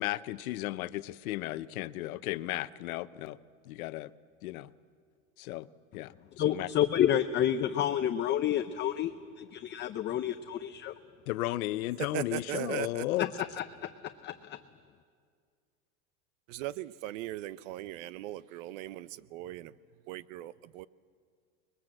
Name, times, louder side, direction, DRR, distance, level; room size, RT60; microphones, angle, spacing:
voice 1, 0.0-3.4 3.7-4.1 4.4-4.7 5.4-5.7 5.9-6.1 6.5-6.7 11.3-13.3, left 16 dB, 85° left, 15 dB, 0.9 m, -34 dB
voice 2, 6.4-10.9 13.2-14.6, left 10 dB, 25° left, 9 dB, 0.6 m, -30 dB
voice 3, 12.1-13.0 16.5-19.7 20.1-20.9, right 14 dB, 65° right, 18 dB, 0.8 m, -38 dB
26.0 x 22.0 x 7.8 m, 2.1 s
supercardioid pair, 140°, 42 cm